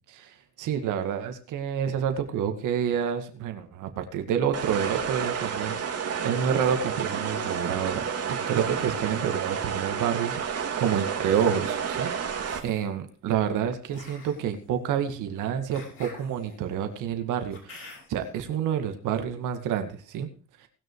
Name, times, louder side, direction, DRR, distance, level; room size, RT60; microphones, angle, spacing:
voice 1, 0.1-20.3 20.6-20.7, right 8 dB, 90° right, 7 dB, 2.1 m, -29 dB
sound 1, 4.5-12.6, right 7 dB, 55° right, 2.6 m, -30 dB
sound 2, 11.0-11.5 12.3-12.9 13.9-18.3, left 3 dB, 45° left, 6.1 m, -49 dB
19.5 x 6.5 x 4.8 m, 0.37 s
cardioid pair, 90°, 30 cm